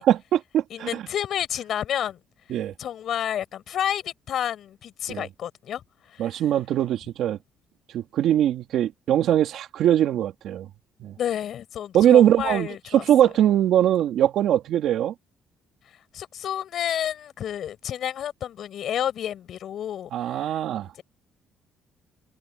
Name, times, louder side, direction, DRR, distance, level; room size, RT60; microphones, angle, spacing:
voice 1, 0.0-1.0 2.5-2.7 5.1-5.3 6.2-7.4 7.9-10.7 11.0-11.1 11.9-15.1 20.1-20.9, right 11 dB, 70° right, 2.8 m, -21 dB
voice 2, 0.7-2.2 2.8-5.8 6.1-6.3 11.2-13.1 16.1-20.1, left 10 dB, 60° left, 7.8 m, -30 dB
cardioid pair, 115°, 0 cm